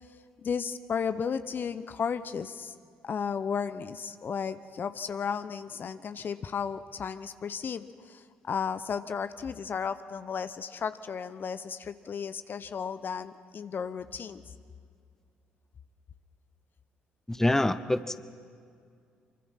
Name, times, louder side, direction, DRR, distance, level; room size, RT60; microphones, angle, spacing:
voice 1, 0.4-2.7 3.0-14.4, left 6 dB, 45° left, 12 dB, 0.8 m, -34 dB
voice 2, 17.3-18.2, left 1 dB, 10° left, 14 dB, 0.9 m, -26 dB
25.0 x 23.5 x 5.8 m, 2.2 s
hypercardioid pair, 50°, 5 cm